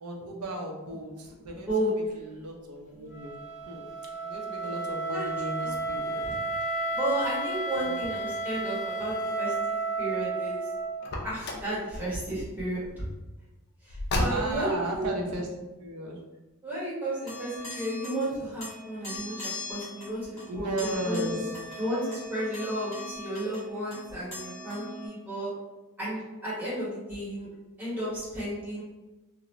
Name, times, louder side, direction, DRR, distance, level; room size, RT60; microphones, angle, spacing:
voice 1, 0.0-4.0 4.2-6.2 7.8-8.1 14.3-15.5 15.8-16.2 20.5-21.6, right 1 dB, 80° right, 0 dB, 0.6 m, -35 dB
Wind instrument woodwind instrument, 3.1-11.1, right 2 dB, 35° left, 0.8 m, -32 dB
voice 2, 4.9-5.2 5.6-5.7 6.9-10.7 11.2-13.1 13.8-15.1 16.6-21.4 21.8-25.5 26.0-27.5 27.8-28.8, right 1 dB, 10° right, -10 dB, 1.2 m, -33 dB
Car, 11.0-11.8 13.9-14.8, left 1 dB, 50° left, 0.4 m, -30 dB
sound 1, 17.1-18.3 18.6-25.1, left 2 dB, 15° left, 1.4 m, -41 dB
2.5 x 2.1 x 3.0 m, 1.1 s
head